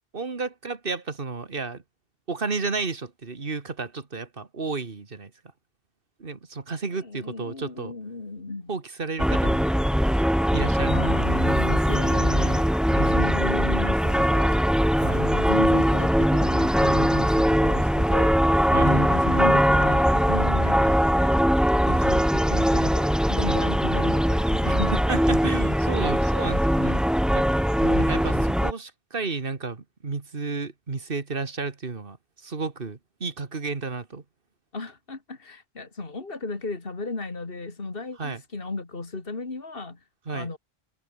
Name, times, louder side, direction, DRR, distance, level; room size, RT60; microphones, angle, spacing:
voice 1, 0.1-1.8 2.3-5.3 6.2-7.9 8.7-9.7 10.5-11.4 12.9-13.4 15.0-15.3 18.7-19.1 21.9-22.3 23.4-23.7 24.6-27.0 27.3-27.5 28.1-34.2 38.2-38.4 40.3-40.5, right 4 dB, 60° right, 2.1 m, -32 dB
voice 2, 6.9-8.7 10.9-14.7 15.1-18.4 18.8-21.5 22.3-25.0 27.8-28.5 34.7-40.0 40.3-40.6, left 3 dB, 65° left, 2.8 m, -35 dB
sound 1, 9.2-28.7, equal, ahead, 0.5 m, -21 dB
omnidirectional pair, 1.0 m